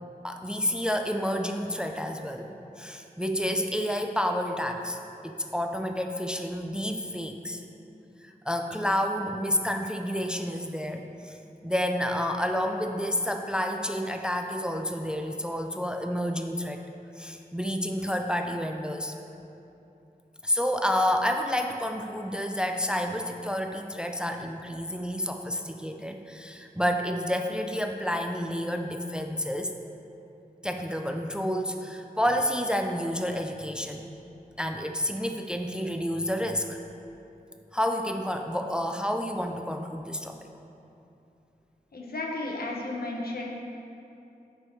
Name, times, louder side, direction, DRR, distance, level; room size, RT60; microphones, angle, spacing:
voice 1, 0.2-2.5 2.8-5.0 5.2-7.6 8.2-11.4 11.6-16.8 17.2-19.1 20.4-29.7 30.6-34.1 34.6-36.8 37.7-40.4, equal, 5° right, 4 dB, 0.5 m, -29 dB
voice 2, 41.9-43.5, left 2 dB, 75° left, -1 dB, 1.2 m, -33 dB
9.8 x 5.5 x 4.7 m, 2.8 s
wide cardioid pair, 85°, 16 cm